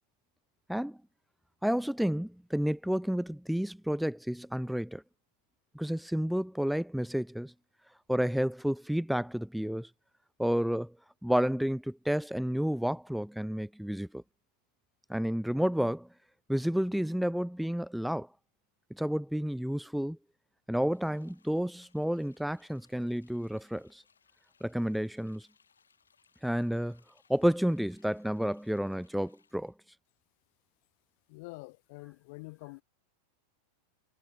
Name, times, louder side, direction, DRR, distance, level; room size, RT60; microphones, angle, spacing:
voice 1, 1.6-5.0 5.7-7.5 8.1-9.9 10.4-10.9 11.2-14.2 15.1-16.1 16.5-18.3 19.0-20.2 20.7-24.0 24.6-25.5 26.4-27.0 27.3-29.7, equal, ahead, 0.4 m, -30 dB
sound 1, 20.9-29.7, left 6 dB, 70° left, 6.0 m, -69 dB
voice 2, 31.3-32.8, left 27 dB, 45° left, 0.6 m, -46 dB
figure-of-eight pair, 90°, 0 cm